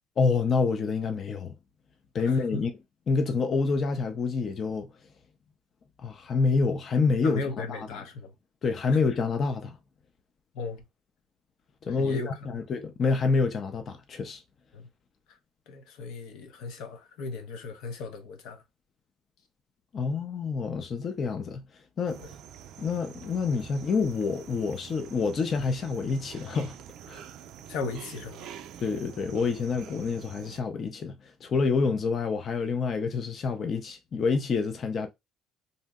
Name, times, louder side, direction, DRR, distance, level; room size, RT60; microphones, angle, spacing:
voice 1, 0.2-1.5 2.1-2.7 3.1-4.9 6.0-7.4 7.7-8.0 8.6-9.8 11.8-14.4 19.9-21.6 22.0-22.2 22.8-26.8 27.1-27.2 28.8-35.1, left 4 dB, 35° left, 0.5 m, -27 dB
voice 2, 2.2-2.6 7.2-8.3 10.5-10.8 12.0-12.3 14.7-14.9 15.7-18.6 27.7-28.5, left 3 dB, 90° left, 0.7 m, -36 dB
sound 1, 22.1-30.6, right 10 dB, 65° right, 0.3 m, -46 dB
2.7 x 2.0 x 3.5 m
cardioid pair, 150°, 0 cm